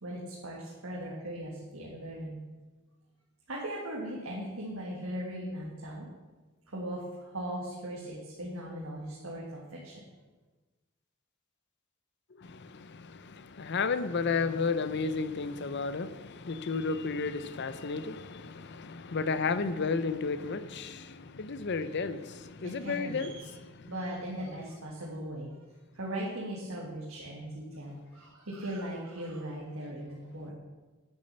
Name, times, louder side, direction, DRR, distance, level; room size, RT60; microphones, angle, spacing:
voice 1, 0.0-2.4 3.5-6.1 6.7-10.0 22.6-23.5 23.9-25.5 25.9-30.5, right 1 dB, 75° right, 2.0 m, -39 dB
voice 2, 12.4-23.9, left 4 dB, 55° left, 0.6 m, -33 dB
9.9 x 6.5 x 6.8 m
head